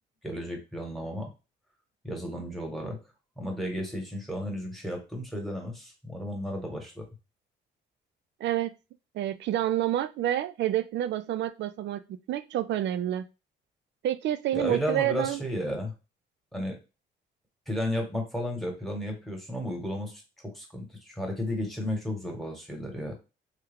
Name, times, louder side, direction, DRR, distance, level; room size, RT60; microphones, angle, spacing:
voice 1, 0.2-1.3 2.0-3.0 3.4-7.0 14.5-15.9 16.5-16.8 17.7-20.2 20.5-23.1, equal, ahead, 1 dB, 1.2 m, -33 dB
voice 2, 8.4-8.7 9.1-13.3 14.0-15.4, right 12 dB, 65° right, 12 dB, 0.4 m, -28 dB
3.2 x 2.3 x 3.5 m, 0.29 s
cardioid pair, 90°, 20 cm